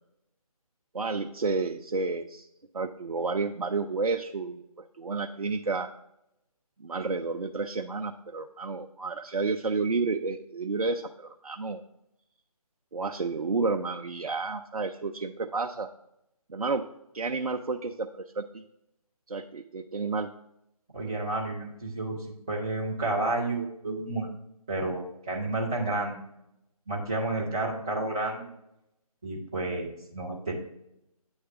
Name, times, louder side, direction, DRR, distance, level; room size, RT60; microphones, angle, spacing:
voice 1, 0.9-2.5 2.7-4.6 5.0-5.9 6.8-11.8 12.9-15.9 16.5-16.8 17.1-18.6 19.3-20.3, right 4 dB, 70° right, 5 dB, 0.5 m, -31 dB
voice 2, 20.9-24.3 24.7-26.2 26.9-28.5 29.2-30.5, right 2 dB, 5° right, -6 dB, 0.4 m, -31 dB
8.7 x 3.2 x 5.6 m, 0.81 s
figure-of-eight pair, 150°, 19 cm